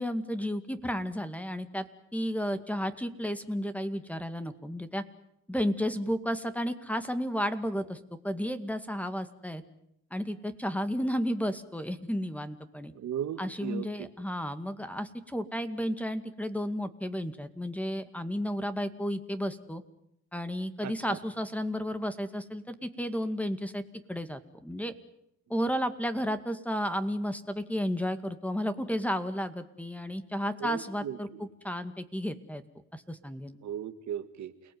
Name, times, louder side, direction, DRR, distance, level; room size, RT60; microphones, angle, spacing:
voice 1, 0.0-1.9 2.1-5.0 5.5-8.0 8.2-9.6 10.1-12.9 13.4-19.8 20.3-23.8 24.1-24.9 25.5-32.6 32.9-33.6, equal, 5° left, 9 dB, 2.1 m, -32 dB
voice 2, 13.0-14.1 20.8-21.2 30.6-31.4 33.6-34.5, right 9 dB, 70° right, 9 dB, 1.9 m, -37 dB
29.5 x 18.5 x 9.5 m, 0.80 s
cardioid pair, 90°, 30 cm